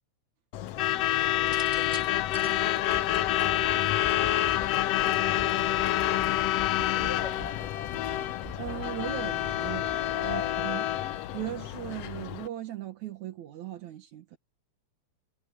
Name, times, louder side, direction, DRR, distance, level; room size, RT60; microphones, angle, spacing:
Truck / Alarm, 0.5-12.5, left 13 dB, 70° left, 1.7 m, -28 dB
sound 1, 1.4-4.5 5.6-6.0, right 2 dB, 20° right, 1.4 m, -46 dB
sound 2, 2.5-10.7, equal, 5° right, 2.0 m, -47 dB
voice 1, 6.9-7.6 10.2-10.5, left 4 dB, 50° left, 8.5 m, -45 dB
voice 2, 8.6-10.9 11.3-14.4, right 12 dB, 75° right, 2.8 m, -38 dB
omnidirectional pair, 3.4 m